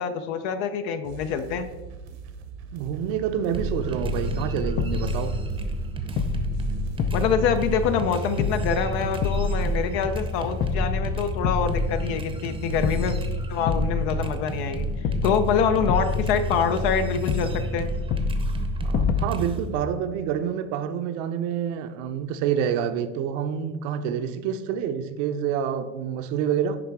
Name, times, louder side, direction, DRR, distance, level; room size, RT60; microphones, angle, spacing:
voice 1, 0.0-1.7 7.1-13.2 13.5-17.9, left 7 dB, 70° left, 0.7 m, -25 dB
sound 1, 1.0-12.0, right 6 dB, 75° right, 1.2 m, -41 dB
voice 2, 2.7-5.4 18.8-26.8, right 8 dB, 60° right, 0.7 m, -27 dB
sound 2, 3.5-19.8, right 1 dB, 15° right, 0.7 m, -31 dB
sound 3, 4.0-5.9 6.2-8.1 8.4-10.2 10.6-12.5 12.8-14.7 15.0-17.0 17.3-19.2, left 4 dB, 30° left, 0.4 m, -28 dB
10.0 x 3.4 x 4.6 m
supercardioid pair, 145°, 33 cm